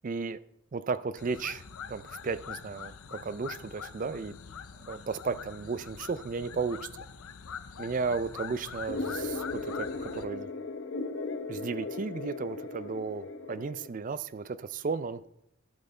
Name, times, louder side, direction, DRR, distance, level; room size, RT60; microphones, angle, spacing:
voice 1, 0.0-0.4 0.7-1.6 1.9-4.3 4.9-6.8 7.8-10.5 11.5-15.2, right 4 dB, 35° right, 0.4 m, -34 dB
sound 1, 1.2-10.3, left 7 dB, 80° left, 0.6 m, -44 dB
sound 2, 8.9-13.9, left 3 dB, 55° left, 0.8 m, -37 dB
12.0 x 7.9 x 4.3 m
head